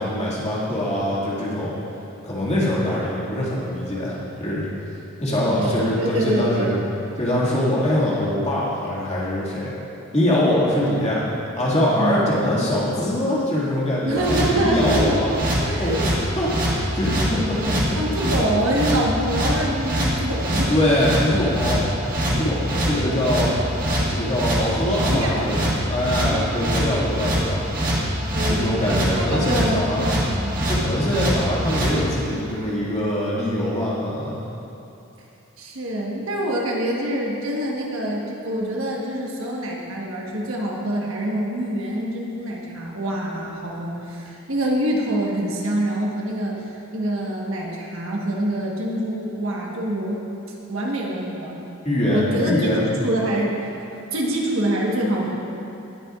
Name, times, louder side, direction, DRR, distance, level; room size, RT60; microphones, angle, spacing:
voice 1, 0.0-1.7 2.2-4.7 5.2-6.8 7.2-9.7 10.1-11.2 11.6-15.3 15.8-18.0 20.7-22.0 22.3-23.5 24.1-27.6 28.5-30.1 30.7-34.4 51.8-52.9, left 1 dB, 30° left, -7 dB, 2.1 m, -23 dB
voice 2, 5.6-6.7 12.0-12.2 14.0-15.2 15.6-16.0 18.0-20.7 22.8-23.2 25.0-25.5 26.3-26.6 28.3-30.5 35.6-46.7 46.9-50.2 50.7-51.6 52.1-52.7 53.0-53.7 54.1-55.4, right 1 dB, 65° right, -2 dB, 1.3 m, -25 dB
sound 1, 14.1-31.9, equal, 40° right, 1.7 m, -24 dB
18.5 x 6.8 x 2.4 m, 2.9 s
head